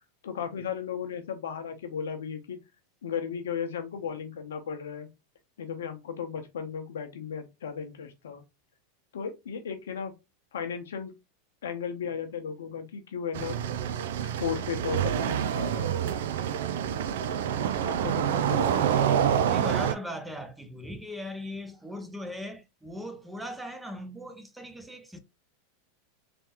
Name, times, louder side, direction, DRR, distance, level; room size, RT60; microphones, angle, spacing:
voice 1, 0.2-2.6 3.0-5.1 5.6-8.4 9.1-10.1 10.5-11.1 11.6-13.6 14.2-15.9 17.8-18.9, left 7 dB, 85° left, 0.8 m, -35 dB
sound 1, 13.3-19.9, right 9 dB, 75° right, 0.4 m, -27 dB
voice 2, 19.5-25.2, equal, 5° right, 0.7 m, -39 dB
3.4 x 3.1 x 3.0 m
hypercardioid pair, 105°, 0 cm